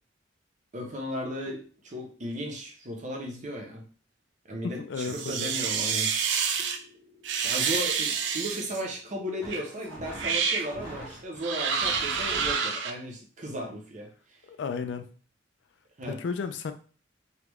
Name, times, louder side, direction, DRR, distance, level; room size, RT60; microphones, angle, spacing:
voice 1, 0.7-3.8 4.5-6.1 7.4-14.1 16.0-16.2, equal, 40° right, 0.8 m, -35 dB
voice 2, 4.6-5.6 14.5-15.1 16.1-16.7, left 5 dB, 65° left, 0.3 m, -33 dB
sound 1, 5.0-6.8 7.2-8.8 9.5-9.7 10.1-10.7 11.4-12.9, right 6 dB, 70° right, 0.4 m, -28 dB
sound 2, 6.6-12.5, equal, 10° left, 0.9 m, -45 dB
3.4 x 2.3 x 3.0 m
head